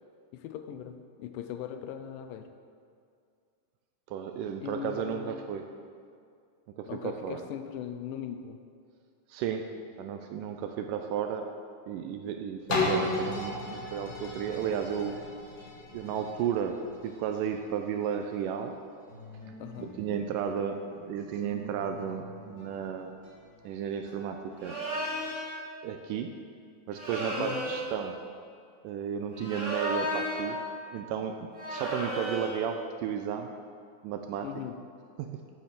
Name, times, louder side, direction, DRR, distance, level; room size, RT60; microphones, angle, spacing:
voice 1, 0.3-2.5 4.6-5.4 6.9-8.6 19.6-19.9 27.4-27.7 34.4-34.8, left 9 dB, 80° left, 8 dB, 2.1 m, -39 dB
voice 2, 4.1-5.7 6.8-7.4 9.3-9.7 10.0-11.5 11.9-15.1 15.9-16.8 17.0-18.7 19.8-20.8 21.1-23.2 23.7-24.8 25.8-26.3 26.9-28.2 28.8-30.6 30.9-31.4 31.7-33.5 34.0-34.5 35.2-35.3, right 8 dB, 80° right, 5 dB, 2.0 m, -33 dB
sound 1, 12.7-18.4 19.0-19.1, left 2 dB, 60° left, 1.1 m, -34 dB
sound 2, 19.1-25.3, left 1 dB, 40° left, 1.8 m, -49 dB
sound 3, 24.6-25.5 26.9-28.0 29.3-30.6 31.5-32.6, right 1 dB, 30° right, 1.6 m, -33 dB
8.7 x 5.9 x 6.8 m, 2.3 s
omnidirectional pair, 4.1 m